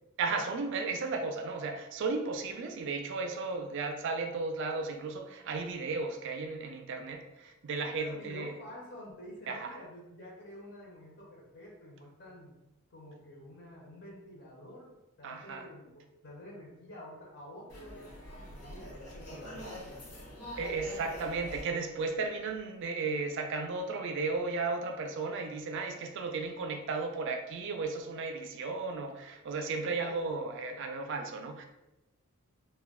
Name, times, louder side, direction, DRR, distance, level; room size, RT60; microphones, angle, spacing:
voice 1, 0.2-8.5 9.5-9.8 15.2-15.7 20.6-31.7, right 3 dB, 55° right, 6 dB, 0.3 m, -35 dB
voice 2, 7.8-12.6 12.9-14.9 15.2-20.2 29.7-30.4, left 1 dB, 50° left, -3 dB, 0.6 m, -49 dB
sound 1, 17.7-22.9, equal, 90° left, 1.0 m, -45 dB
2.2 x 2.2 x 3.5 m, 0.99 s
head